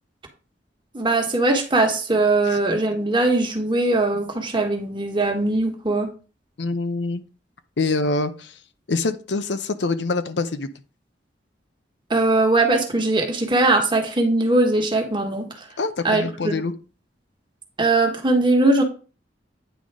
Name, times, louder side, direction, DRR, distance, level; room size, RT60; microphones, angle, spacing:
voice 1, 0.9-6.1 12.1-15.5 16.0-16.5 17.8-18.8, right 2 dB, 25° right, 3 dB, 1.5 m, -20 dB
voice 2, 6.6-7.2 7.8-8.6 8.9-10.7 15.8-16.7, left 3 dB, 70° left, 11 dB, 0.7 m, -25 dB
9.2 x 3.9 x 4.8 m, 0.35 s
head